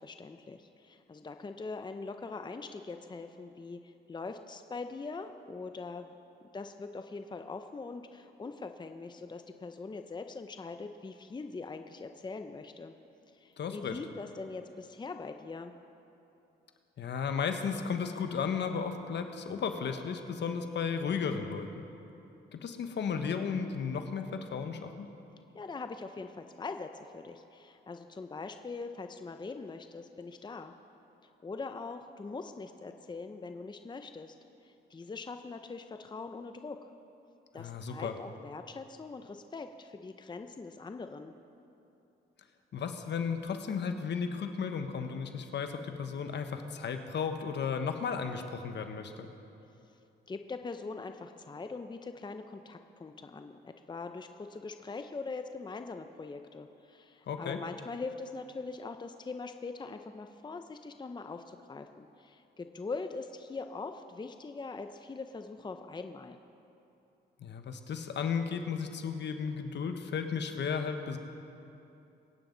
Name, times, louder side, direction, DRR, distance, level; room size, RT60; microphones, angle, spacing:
voice 1, 0.0-6.1 6.5-12.9 13.3-15.7 25.5-30.7 31.4-34.3 34.6-36.9 37.5-41.3 50.3-66.4, left 4 dB, 25° left, 7 dB, 0.7 m, -42 dB
voice 2, 13.6-14.0 17.0-21.9 22.5-25.1 37.6-38.1 42.7-49.3 57.3-57.6 67.4-71.2, left 6 dB, 65° left, 6 dB, 1.2 m, -34 dB
23.5 x 9.1 x 4.0 m, 2.8 s
cardioid pair, 70°, 19 cm